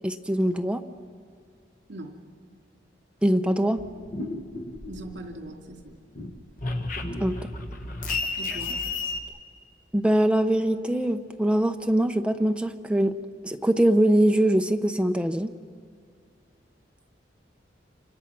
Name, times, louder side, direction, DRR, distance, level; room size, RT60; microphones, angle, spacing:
voice 1, 0.0-0.8 3.2-3.8 7.2-7.4 9.9-13.1 13.4-15.5, right 1 dB, 5° right, 6 dB, 0.8 m, -22 dB
voice 2, 1.9-2.2 4.9-5.9 8.4-8.8, right 1 dB, 75° right, 2 dB, 2.7 m, -40 dB
sound 1, 3.8-5.5 5.8-9.2, left 3 dB, 45° left, 1.4 m, -32 dB
27.5 x 25.5 x 6.1 m, 2.1 s
head